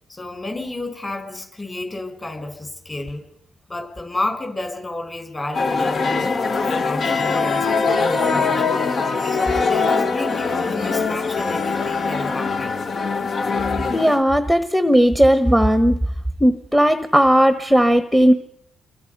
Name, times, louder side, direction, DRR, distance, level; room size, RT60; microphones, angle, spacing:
voice 1, 0.1-3.2 3.7-9.0 9.3-12.8, left 2 dB, 25° left, 7 dB, 4.7 m, -31 dB
sound 1, 5.5-14.2, left 4 dB, 45° left, 1.2 m, -22 dB
voice 2, 13.9-16.0 16.4-18.3, equal, ahead, 9 dB, 1.2 m, -16 dB
28.0 x 23.0 x 5.4 m, 0.75 s
cardioid pair, 90°, 0 cm